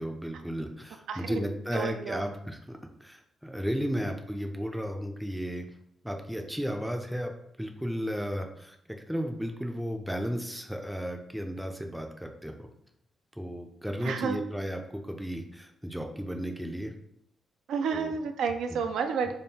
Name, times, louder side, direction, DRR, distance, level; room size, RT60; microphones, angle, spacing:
voice 1, 0.0-5.7 6.0-7.3 7.6-8.8 9.1-12.7 13.4-16.9 17.9-18.2 18.7-18.8, equal, ahead, 3 dB, 0.4 m, -34 dB
voice 2, 1.1-1.4 1.7-2.2 14.0-14.4 17.7-19.3, right 6 dB, 85° right, 6 dB, 0.4 m, -30 dB
3.5 x 2.3 x 4.0 m, 0.74 s
cardioid pair, 145°, 0 cm